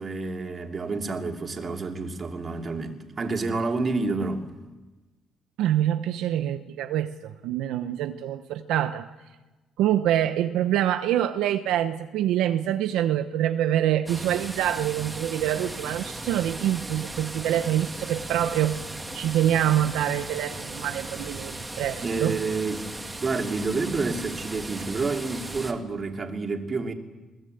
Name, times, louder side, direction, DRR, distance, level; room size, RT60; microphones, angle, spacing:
voice 1, 0.0-4.5 22.0-22.9 23.2-26.9, right 3 dB, 40° right, 3.1 m, -29 dB
voice 2, 5.6-9.1 9.8-18.8 19.1-22.4, right 11 dB, 85° right, 0.9 m, -25 dB
sound 1, 14.1-25.7, right 2 dB, 15° right, 2.7 m, -37 dB
22.0 x 20.5 x 8.0 m
supercardioid pair, 75°, 0 cm